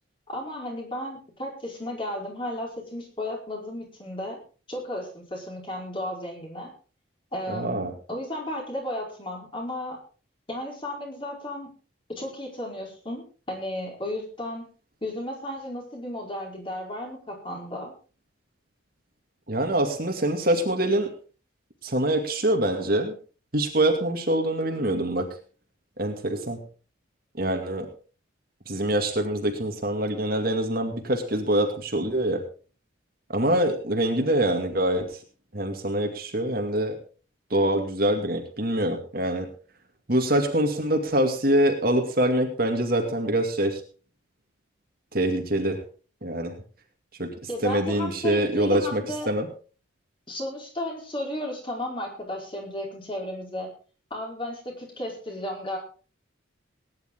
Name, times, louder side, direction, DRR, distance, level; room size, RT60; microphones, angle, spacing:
voice 1, 0.3-4.4 4.7-6.7 7.3-10.0 10.5-11.7 12.1-14.7 15.0-17.9 47.5-49.3 50.3-53.7 54.1-55.8, left 1 dB, 25° left, 0 dB, 4.9 m, -34 dB
voice 2, 7.5-7.9 19.5-21.1 21.8-23.1 23.5-25.3 26.0-26.6 27.4-27.9 28.7-32.4 33.3-35.2 35.5-37.0 37.5-39.5 40.1-43.8 45.1-45.8 46.2-46.5 47.2-47.3 47.6-49.5, right 1 dB, 50° right, 4 dB, 2.3 m, -25 dB
19.5 x 10.5 x 3.8 m, 0.37 s
head